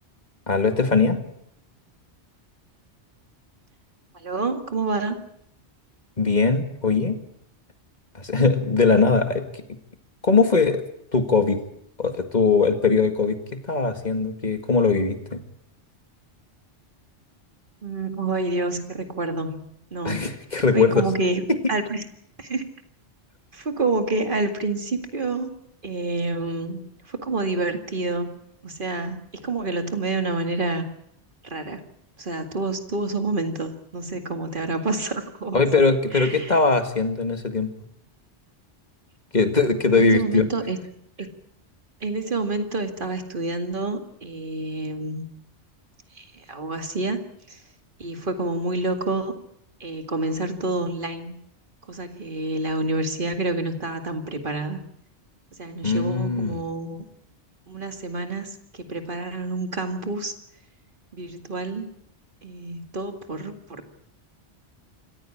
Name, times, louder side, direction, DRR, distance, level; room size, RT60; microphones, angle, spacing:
voice 1, 0.5-1.2 6.2-7.2 8.1-9.6 10.2-10.8 11.1-11.6 12.0-13.4 13.7-15.4 20.0-21.0 21.5-21.6 35.5-37.7 39.3-40.4 55.8-56.6, left 4 dB, 40° left, 8 dB, 2.1 m, -20 dB
voice 2, 4.1-5.2 17.8-19.7 19.9-20.3 20.7-21.4 21.7-22.1 22.4-22.7 23.5-25.5 25.8-28.4 28.6-30.9 31.4-31.8 32.2-35.6 36.1-36.6 40.0-40.8 41.2-41.3 42.0-45.2 46.1-47.2 47.5-47.6 48.0-49.3 49.8-51.4 51.9-54.9 55.6-57.0 57.7-60.3 61.1-61.9 62.4-63.9, right 2 dB, 50° right, 7 dB, 2.3 m, -28 dB
26.5 x 15.0 x 8.8 m, 0.74 s
omnidirectional pair, 1.2 m